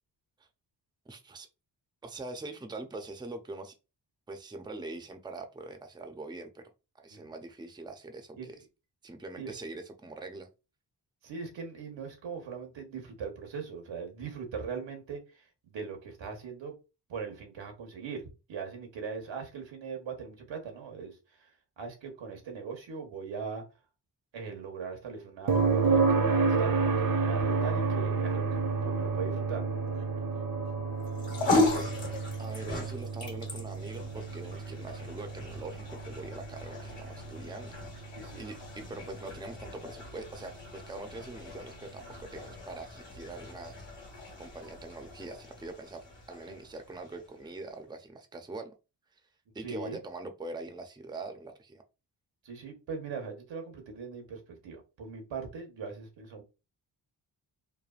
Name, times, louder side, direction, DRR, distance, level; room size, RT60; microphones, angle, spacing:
voice 1, 1.1-1.5 2.0-3.7 4.3-6.6 6.9-8.6 9.0-10.5 31.3-31.9 32.4-37.8 38.1-43.8 44.4-48.7 49.5-51.8, right 2 dB, 10° right, 6 dB, 0.5 m, -43 dB
voice 2, 11.2-16.8 17.1-21.5 21.8-23.6 24.3-29.6 38.1-38.5 46.5-46.6 49.6-50.0 52.4-56.4, right 5 dB, 85° right, 3 dB, 1.0 m, -40 dB
sound 1, 25.5-39.3 41.6-41.7, right 4 dB, 50° right, 0.7 m, -30 dB
sound 2, 31.0-47.5, left 2 dB, 70° left, 1.4 m, -37 dB
3.2 x 2.2 x 2.4 m, 0.29 s
cardioid pair, 55°, 44 cm